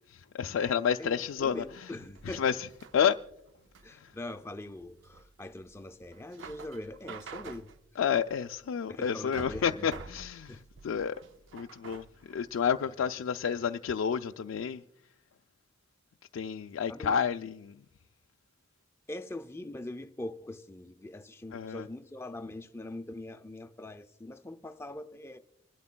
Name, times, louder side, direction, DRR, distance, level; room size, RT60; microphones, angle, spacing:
voice 1, 0.1-1.6 2.3-2.7 2.9-3.2 3.9-4.1 8.0-11.2 11.5-14.8 16.3-17.8 21.5-21.9, left 7 dB, 80° left, 0.3 m, -30 dB
voice 2, 1.0-2.4 3.8-7.7 8.9-9.9 10.5-10.6 13.0-13.1 16.9-17.2 19.1-25.4, left 1 dB, 15° left, 0.5 m, -42 dB
sound 1, 1.3-12.9, right 4 dB, 65° right, 0.5 m, -49 dB
29.0 x 12.0 x 2.2 m
head